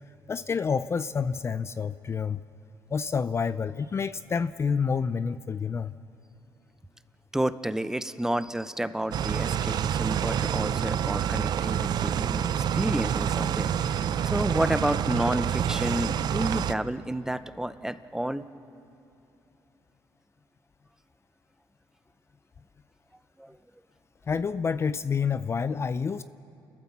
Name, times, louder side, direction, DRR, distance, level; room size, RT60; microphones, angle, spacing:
voice 1, 0.3-2.4 2.9-5.9 24.3-26.2, left 6 dB, 35° left, 14 dB, 0.4 m, -28 dB
voice 2, 7.3-18.4 23.4-23.6, right 1 dB, 5° right, 13 dB, 0.7 m, -30 dB
sound 1, 9.1-16.7, right 9 dB, 60° right, 0.6 m, -27 dB
29.0 x 13.5 x 7.2 m, 2.8 s
cardioid pair, 90°, 8 cm